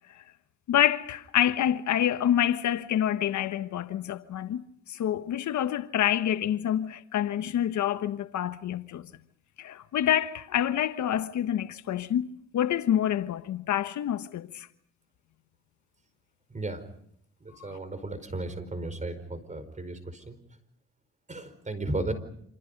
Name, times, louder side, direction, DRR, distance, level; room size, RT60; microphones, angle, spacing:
voice 1, 0.7-9.1 9.6-12.3 12.5-14.7 17.6-17.8, left 11 dB, 70° left, 1.3 m, -27 dB
voice 2, 16.5-16.8 17.4-20.4 21.3-22.1, right 2 dB, 25° right, 4.8 m, -35 dB
28.0 x 27.5 x 5.4 m
cardioid pair, 90°, 30 cm